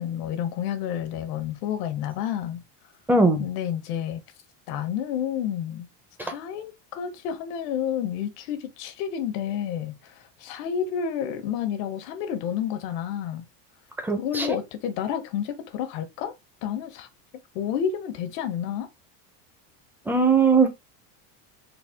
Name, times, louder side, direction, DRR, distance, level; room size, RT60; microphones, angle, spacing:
voice 1, 0.0-2.6 3.4-4.2 4.7-5.9 6.2-13.4 14.2-16.3 16.6-17.1 17.5-18.9, left 9 dB, 80° left, 1.1 m, -30 dB
voice 2, 3.1-3.4 6.2-6.3 14.0-14.5 20.1-20.7, right 4 dB, 5° right, 0.6 m, -20 dB
4.1 x 2.3 x 3.5 m
supercardioid pair, 135°, 47 cm